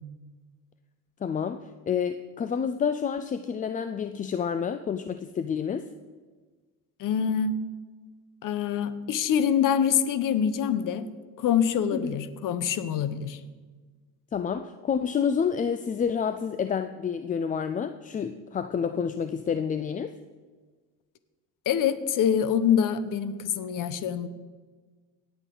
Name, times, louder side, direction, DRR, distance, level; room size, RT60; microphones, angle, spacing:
voice 1, 1.2-5.8 11.9-12.1 14.3-20.1, left 7 dB, 20° left, 10 dB, 0.3 m, -29 dB
voice 2, 7.0-7.6 8.4-11.1 11.4-13.4 21.7-24.3, left 8 dB, 50° left, 13 dB, 0.9 m, -25 dB
17.5 x 8.2 x 3.9 m, 1.4 s
supercardioid pair, 100°, 40 cm